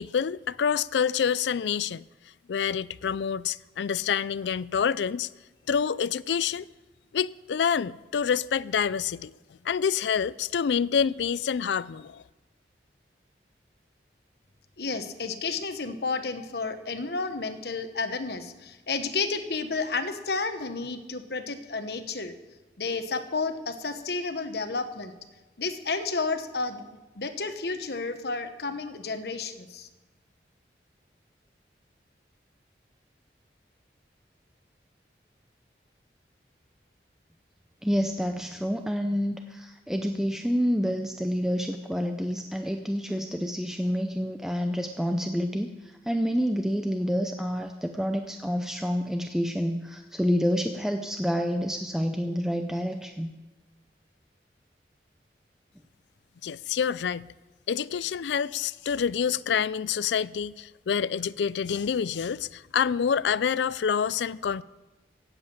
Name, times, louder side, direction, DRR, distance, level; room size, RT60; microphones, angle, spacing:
voice 1, 0.0-2.1 2.5-5.3 5.7-6.7 7.1-9.3 9.6-12.2 56.4-57.3 57.7-64.6, left 7 dB, 85° left, 0.4 m, -27 dB
voice 2, 14.8-22.3 22.8-25.1 25.6-26.9 27.1-29.9, left 4 dB, 70° left, 1.1 m, -31 dB
voice 3, 37.8-53.3, equal, 5° right, 0.5 m, -28 dB
15.5 x 8.0 x 8.7 m
head